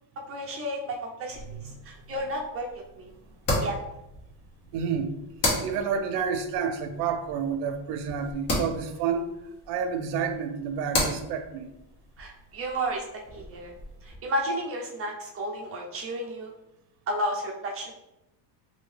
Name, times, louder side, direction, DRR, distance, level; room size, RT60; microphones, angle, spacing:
voice 1, 0.3-1.6 1.8-3.1 3.6-3.8 12.2-13.1 13.3-13.7 14.0-16.5 17.1-17.9, right 1 dB, 30° right, -1 dB, 0.5 m, -32 dB
sound 1, 1.3-14.2, left 1 dB, 60° left, 1.3 m, -35 dB
voice 2, 4.7-5.2 5.6-9.2 9.7-11.7, right 6 dB, 80° right, 7 dB, 0.5 m, -29 dB
2.7 x 2.7 x 3.1 m, 0.88 s
supercardioid pair, 120°, 49 cm